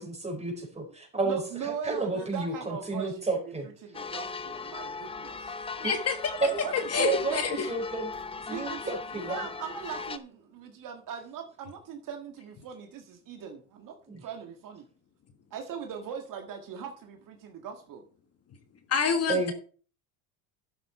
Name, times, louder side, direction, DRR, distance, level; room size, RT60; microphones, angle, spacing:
voice 1, 0.0-3.7 5.8-5.9 6.9-8.1 8.4-9.4 14.1-14.2 19.3-19.5, right 3 dB, 15° right, 2 dB, 4.6 m, -32 dB
voice 2, 1.2-3.1 3.8-5.5 6.6-6.7 7.0-7.4 8.5-14.9 15.5-18.0, right 7 dB, 45° right, 4 dB, 1.9 m, -40 dB
sound 1, 3.9-10.2, left 4 dB, 10° left, 0.6 m, -38 dB
voice 3, 5.8-6.2 6.7-7.7 18.9-19.5, left 6 dB, 35° left, 6 dB, 1.5 m, -27 dB
11.5 x 8.0 x 4.4 m, 0.41 s
supercardioid pair, 110°, 45 cm